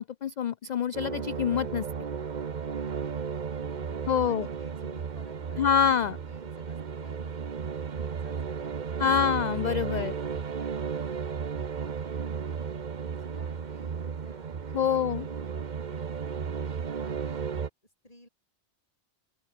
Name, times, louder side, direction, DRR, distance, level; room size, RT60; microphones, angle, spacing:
voice 1, 0.0-1.9 4.1-4.5 5.6-6.2 9.0-10.2 14.7-15.3, left 8 dB, 55° left, 0.5 m, -26 dB
sound 1, 0.9-17.7, right 6 dB, 45° right, 1.0 m, -34 dB
voice 2, 3.5-7.5 7.9-9.5 9.9-12.0 12.5-12.9 13.1-16.1 16.7-17.6 18.0-18.3, left 1 dB, 35° left, 7.1 m, -54 dB
open air
omnidirectional pair, 1.1 m